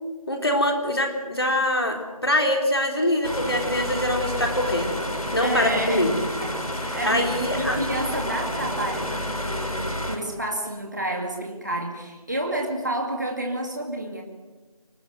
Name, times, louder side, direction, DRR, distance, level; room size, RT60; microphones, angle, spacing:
voice 1, 0.3-4.9 5.3-6.1 7.0-7.8, left 1 dB, 40° left, 2 dB, 3.8 m, -23 dB
sound 1, 3.2-10.2, left 1 dB, 70° left, 4.6 m, -30 dB
voice 2, 5.4-6.1 6.4-7.3 7.6-14.2, right 1 dB, 30° right, 1 dB, 2.3 m, -30 dB
25.0 x 19.5 x 8.0 m, 1.2 s
figure-of-eight pair, 180°, 19 cm